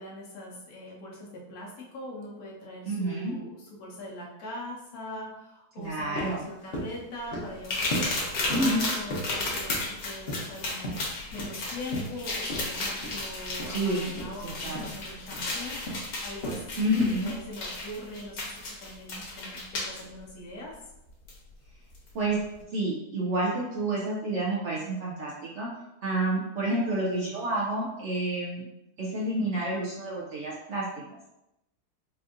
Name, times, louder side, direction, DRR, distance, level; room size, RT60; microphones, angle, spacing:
voice 1, 0.0-11.0 11.3-20.7 26.6-26.8, left 2 dB, 70° left, -3 dB, 1.2 m, -41 dB
voice 2, 2.9-3.3 5.8-6.5 8.5-8.8 13.7-14.2 14.4-14.9 16.8-17.3 22.1-22.4 22.7-25.7 26.0-28.7 29.0-31.0, right 1 dB, 65° right, -4 dB, 0.7 m, -29 dB
sound 1, 5.8-5.9 6.2-6.4 6.7-7.0 7.3-7.6 7.9-8.2 8.5-8.8 9.1-9.9 10.3-11.1 11.4-11.6 11.9-12.2 12.5-12.7 13.0-13.2 13.6-13.8 14.1-14.3 14.7-15.0 15.3-15.5 15.9-16.1 16.4-16.6 17.0-17.2, equal, 50° left, 0.8 m, -35 dB
sound 2, 7.6-20.0 21.3-21.4 21.9-22.1, left 2 dB, 85° left, 1.5 m, -34 dB
4.3 x 2.6 x 2.4 m, 0.90 s
omnidirectional pair, 1.7 m